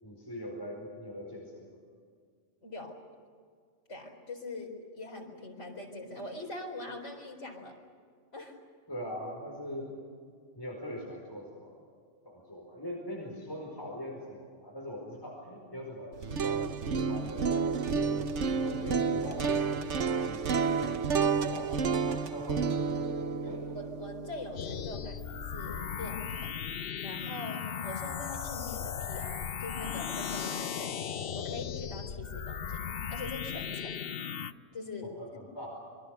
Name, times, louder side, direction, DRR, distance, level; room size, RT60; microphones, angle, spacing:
voice 1, 0.0-1.8 8.9-10.0 10.5-11.8 12.2-17.7 18.0-19.5 20.1-20.5 20.8-21.0 21.4-23.2 23.4-23.8 35.2-35.7, equal, 20° left, -2 dB, 4.9 m, -42 dB
voice 2, 2.6-3.0 3.9-7.8 8.3-8.6 23.7-26.5 27.0-31.0 31.3-34.1 34.7-35.1, left 2 dB, 75° left, 2 dB, 4.7 m, -42 dB
sound 1, 16.1-26.2, right 5 dB, 75° right, 1.3 m, -31 dB
sound 2, 24.6-34.5, left 8 dB, 55° left, 0.9 m, -37 dB
27.0 x 23.5 x 6.7 m, 2.1 s
omnidirectional pair, 1.2 m